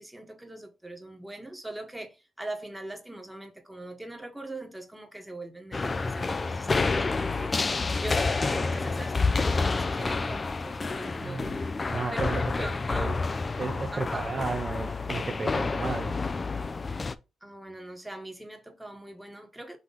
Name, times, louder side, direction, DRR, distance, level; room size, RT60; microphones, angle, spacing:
voice 1, 0.0-7.7 8.0-11.5 11.9-13.1 13.9-14.3 17.4-19.8, right 1 dB, 10° right, 1.2 m, -41 dB
sound 1, 5.7-17.1, left 3 dB, 35° left, 0.4 m, -29 dB
voice 2, 11.2-11.6 11.9-13.1 13.6-16.1, right 4 dB, 40° right, 0.5 m, -34 dB
3.9 x 3.0 x 3.9 m
cardioid pair, 75°, 0 cm